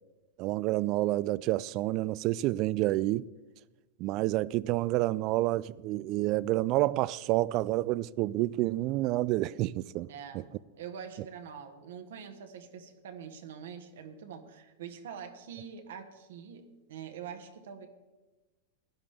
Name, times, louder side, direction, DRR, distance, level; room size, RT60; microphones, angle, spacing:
voice 1, 0.4-3.3 4.0-10.1, right 17 dB, 45° right, 0.3 m, -29 dB
voice 2, 10.1-17.9, right 7 dB, 70° right, 1.3 m, -45 dB
16.5 x 11.0 x 3.5 m
hypercardioid pair, 100°, 0 cm